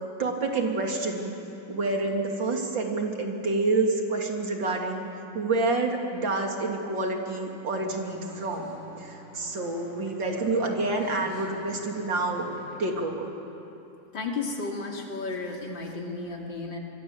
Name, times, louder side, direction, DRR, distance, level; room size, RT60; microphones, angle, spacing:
voice 1, 0.2-1.3 1.7-12.4 12.8-13.3, right 3 dB, 75° right, 2 dB, 3.4 m, -28 dB
sound 1, 7.8-13.1, left 1 dB, 50° left, 5.2 m, -46 dB
voice 2, 14.1-16.8, left 3 dB, 75° left, 1 dB, 3.3 m, -33 dB
25.0 x 24.0 x 8.0 m, 2.9 s
omnidirectional pair, 2.1 m